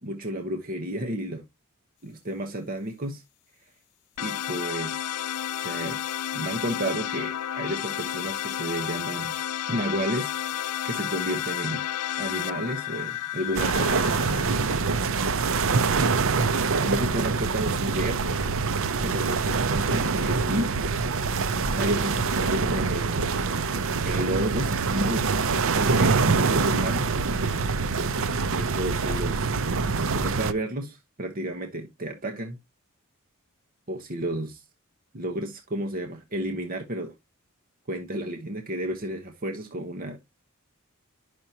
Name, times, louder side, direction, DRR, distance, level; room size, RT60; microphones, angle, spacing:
voice 1, 0.0-1.4 2.0-3.2 4.2-5.1 5.6-6.0 6.3-9.4 9.7-11.8 12.2-14.2 16.8-18.2 19.0-20.7 21.7-23.3 24.0-25.3 25.7-27.1 28.5-29.6 30.0-32.6 33.9-34.6 35.1-37.1 37.9-40.2, right 1 dB, 40° right, 1.0 m, -31 dB
sound 1, 4.2-15.0, left 11 dB, 85° left, 0.4 m, -32 dB
sound 2, 13.5-30.5, right 4 dB, 65° right, 0.7 m, -25 dB
10.5 x 6.2 x 2.8 m
head